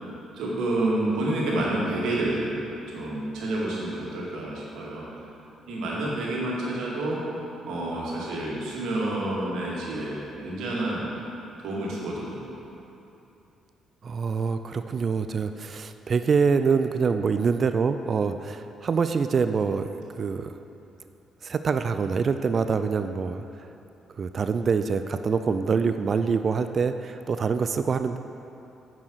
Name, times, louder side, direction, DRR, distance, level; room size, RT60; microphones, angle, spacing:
voice 1, 0.3-2.6 2.9-5.1 5.7-7.2 7.7-11.1 11.6-12.5, right 2 dB, 60° right, -5 dB, 2.1 m, -29 dB
voice 2, 14.0-19.9 20.2-20.6 21.4-23.5 24.2-28.2, right 5 dB, 40° right, 9 dB, 0.4 m, -25 dB
9.5 x 6.2 x 6.4 m, 2.9 s
figure-of-eight pair, 45°, 0 cm